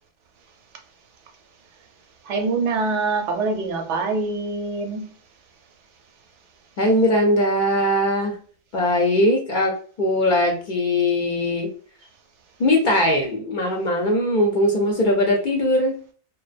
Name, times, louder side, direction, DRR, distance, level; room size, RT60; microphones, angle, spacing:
voice 1, 2.3-5.1, right 3 dB, 85° right, 0.9 m, -24 dB
voice 2, 6.8-8.3 8.7-9.7 10.0-11.7 12.6-16.0, left 1 dB, 55° left, 0.6 m, -20 dB
2.5 x 2.2 x 2.4 m
omnidirectional pair, 1.2 m